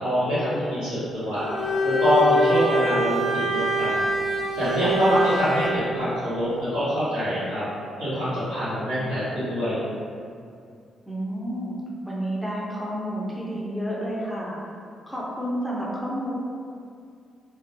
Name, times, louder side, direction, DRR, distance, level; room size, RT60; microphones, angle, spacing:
voice 1, 0.0-1.5 1.8-4.0 4.6-7.6 8.0-9.8, equal, 80° right, -17 dB, 1.3 m, -24 dB
Bowed string instrument, 1.4-5.9, right 1 dB, 50° right, 0.6 m, -25 dB
voice 2, 4.8-5.1 11.1-11.7 12.1-14.6 15.1-16.3, equal, ahead, -6 dB, 0.6 m, -30 dB
2.5 x 2.0 x 2.6 m, 2.3 s
figure-of-eight pair, 40°, 0 cm